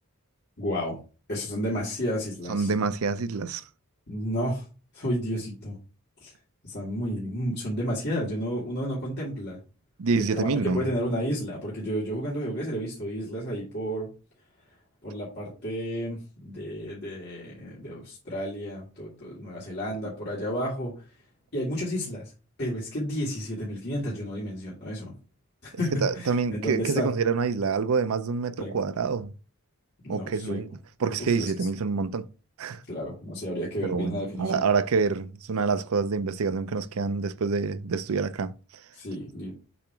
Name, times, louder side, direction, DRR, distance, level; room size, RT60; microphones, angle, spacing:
voice 1, 0.6-1.0 1.3-2.7 4.1-4.6 4.9-5.8 6.2-6.3 6.6-9.6 10.2-14.1 15.0-20.9 21.5-22.3 22.6-25.1 25.6-27.1 28.6-28.7 30.0-30.6 31.3-31.7 32.9-34.6 38.9-39.5, equal, 50° left, 1.9 m, -31 dB
voice 2, 2.5-3.6 10.0-10.8 26.0-29.3 30.1-30.7 31.0-32.3 32.6-32.8 33.8-38.5, right 4 dB, 90° right, 0.5 m, -27 dB
7.1 x 3.0 x 4.5 m
head